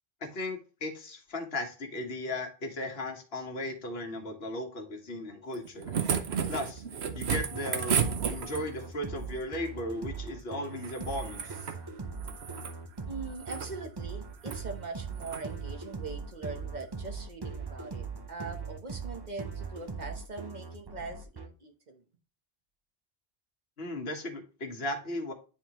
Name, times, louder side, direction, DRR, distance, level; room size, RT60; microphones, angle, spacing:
voice 1, 0.2-5.9 6.5-6.8 7.1-8.0 8.3-11.6 23.8-25.3, left 1 dB, 75° left, 1.5 m, -36 dB
sound 1, 5.5-8.9 10.8-11.8 12.2-12.8 13.3-13.7 14.4-14.6 15.2-15.4 16.8-16.9, right 7 dB, 85° right, 1.0 m, -33 dB
sound 2, 7.3-21.5, right 5 dB, 25° right, 0.6 m, -40 dB
voice 2, 13.1-22.0, right 3 dB, 45° right, 1.0 m, -42 dB
9.6 x 3.7 x 2.9 m
omnidirectional pair, 1.0 m